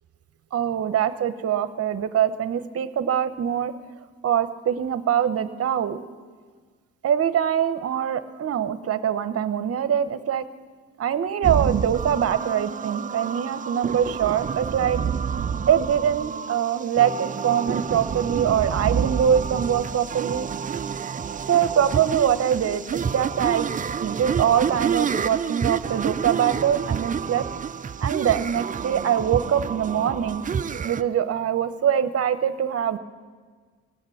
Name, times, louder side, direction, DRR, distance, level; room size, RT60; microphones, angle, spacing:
voice 1, 0.5-3.7 4.2-6.0 7.0-10.4 11.0-15.0 15.7-20.5 21.5-27.4 28.0-30.4 30.8-33.0, right 9 dB, 50° right, 12 dB, 0.9 m, -23 dB
sound 1, 11.4-31.0, right 7 dB, 25° right, 0.4 m, -28 dB
18.0 x 6.7 x 9.8 m, 1.5 s
cardioid pair, 90°, 30 cm